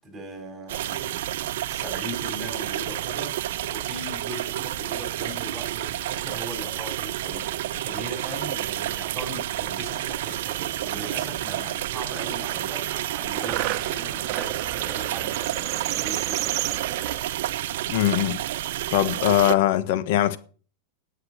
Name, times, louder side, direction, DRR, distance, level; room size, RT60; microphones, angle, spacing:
voice 1, 0.0-12.9 13.2-16.8, right 1 dB, 15° right, 7.2 m, -39 dB
sound 1, 0.7-19.5, right 13 dB, 75° right, 0.7 m, -30 dB
sound 2, 10.6-10.7 10.8-11.6 12.0-17.2, right 15 dB, 45° right, 1.0 m, -33 dB
voice 2, 17.9-18.4 18.9-20.4, left 13 dB, 65° left, 1.3 m, -21 dB
10.5 x 8.3 x 8.3 m
supercardioid pair, 125°, 0 cm